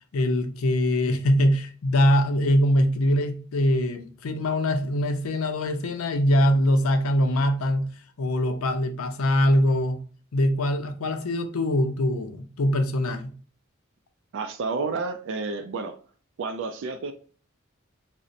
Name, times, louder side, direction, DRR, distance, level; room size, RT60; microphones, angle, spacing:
voice 1, 0.1-7.9 8.2-10.0 10.3-13.3, left 1 dB, 80° left, 0.5 m, -23 dB
voice 2, 14.3-16.0 16.4-17.1, right 4 dB, 60° right, 0.3 m, -30 dB
3.9 x 2.1 x 2.5 m
head